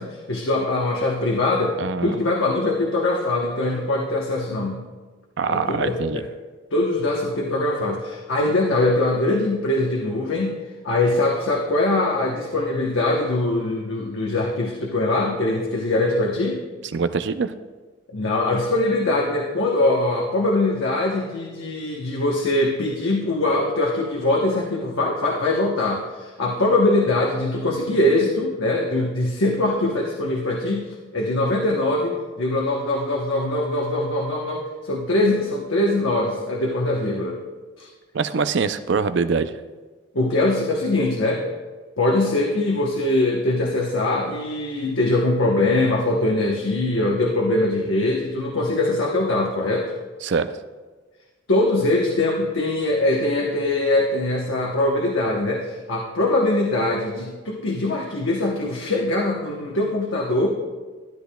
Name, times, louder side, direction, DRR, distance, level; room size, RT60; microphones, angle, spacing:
voice 1, 0.0-4.9 5.5-6.3 6.7-10.6 10.8-16.6 18.1-37.4 37.8-37.9 40.1-41.5 42.0-49.9 51.5-60.5, left 2 dB, 80° left, -1 dB, 1.0 m, -22 dB
voice 2, 1.8-2.2 5.4-6.2 16.9-17.5 38.1-39.5 50.2-50.5, right 5 dB, 60° right, 11 dB, 0.4 m, -23 dB
12.5 x 10.0 x 2.3 m, 1.3 s
head